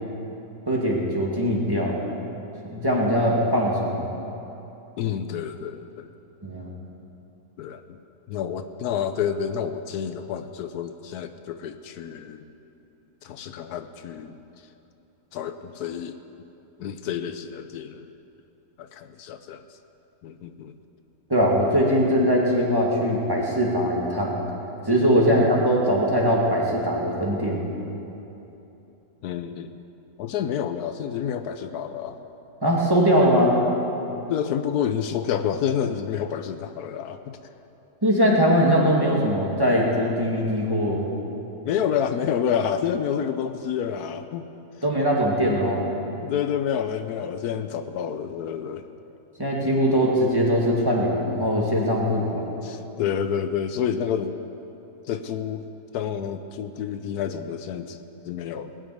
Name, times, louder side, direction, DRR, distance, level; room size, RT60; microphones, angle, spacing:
voice 1, 0.7-2.0 2.7-4.1 6.4-6.7 21.3-24.4 24.8-27.6 32.6-33.6 38.0-41.0 44.8-45.8 49.4-52.4, equal, 15° right, -3 dB, 2.2 m, -21 dB
voice 2, 5.0-6.1 7.6-7.8 8.3-12.5 13.2-14.4 15.3-16.2 16.8-18.1 18.8-19.6 20.2-20.7 25.3-25.5 29.2-29.8 30.2-32.2 34.1-37.4 41.6-44.5 46.2-48.9 52.6-54.3 55.1-55.7 55.9-58.8, left 8 dB, 80° left, 9 dB, 1.2 m, -29 dB
19.5 x 6.4 x 9.4 m, 3.0 s
omnidirectional pair, 1.6 m